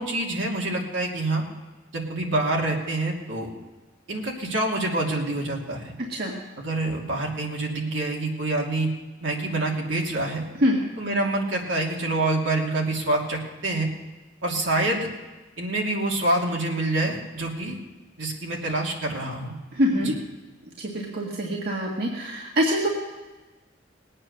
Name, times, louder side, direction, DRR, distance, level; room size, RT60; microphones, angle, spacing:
voice 1, 0.0-1.4 1.9-3.5 4.1-5.9 6.6-8.9 9.2-10.4 11.0-13.9 14.4-15.1 15.6-17.8 18.2-19.5 20.0-20.1, right 2 dB, 80° right, -1 dB, 2.8 m, -26 dB
voice 2, 19.7-20.1 20.8-22.9, equal, 55° right, -2 dB, 1.9 m, -24 dB
20.0 x 8.8 x 6.6 m, 1.2 s
head